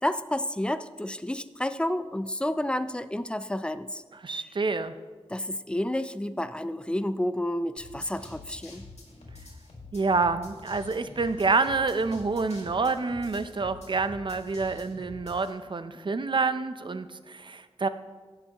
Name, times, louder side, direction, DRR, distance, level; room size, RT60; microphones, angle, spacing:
voice 1, 0.0-4.0 5.3-8.8, left 1 dB, 10° left, 12 dB, 0.4 m, -30 dB
voice 2, 4.2-4.9 9.9-17.9, right 4 dB, 45° right, 12 dB, 0.5 m, -27 dB
sound 1, 7.8-15.5, left 2 dB, 80° left, 2.3 m, -47 dB
17.0 x 6.7 x 2.9 m, 1.4 s
wide cardioid pair, 85°, 11 cm